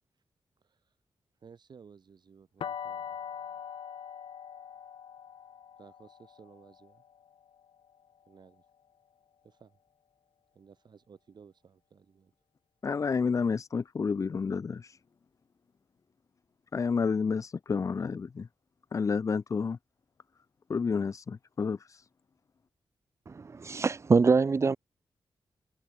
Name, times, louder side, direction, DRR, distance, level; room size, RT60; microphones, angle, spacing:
voice 1, 0.6-1.0 1.4-3.2 5.8-7.0 8.3-8.7 9.4-9.8 10.5-12.3, right 6 dB, 60° right, 4.9 m, -56 dB
sound 1, 2.6-8.4, left 8 dB, 85° left, 1.8 m, -43 dB
voice 2, 12.8-15.0 16.7-18.5 18.9-19.8 20.7-22.1, left 5 dB, 40° left, 0.6 m, -30 dB
voice 3, 23.3-24.8, right 4 dB, 35° right, 0.7 m, -24 dB
wide cardioid pair, 125°, 8 cm